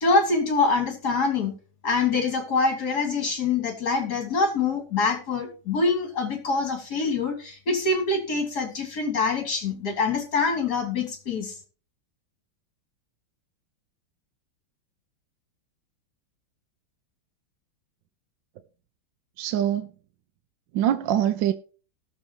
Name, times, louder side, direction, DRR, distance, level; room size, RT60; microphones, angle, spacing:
voice 1, 0.0-1.5 1.8-11.5, left 4 dB, 50° left, 3.1 m, -25 dB
voice 2, 19.4-19.9 20.7-21.5, right 11 dB, 70° right, 1.3 m, -23 dB
19.0 x 7.1 x 3.0 m
omnidirectional pair, 2.2 m